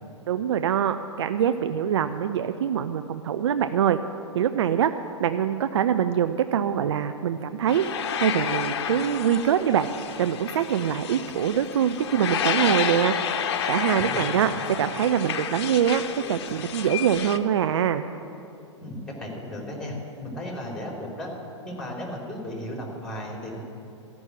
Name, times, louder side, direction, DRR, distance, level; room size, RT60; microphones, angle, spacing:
voice 1, 0.3-4.0 4.3-4.9 5.2-7.9 8.2-9.9 10.2-13.1 13.7-18.0, right 9 dB, 65° right, 10 dB, 0.5 m, -24 dB
sound 1, 7.7-17.4, left 8 dB, 55° left, 0.8 m, -30 dB
voice 2, 14.0-14.5 18.8-21.3 21.6-23.6, left 1 dB, 5° left, -2 dB, 3.4 m, -35 dB
14.0 x 6.2 x 9.9 m, 2.6 s
figure-of-eight pair, 105°, 16 cm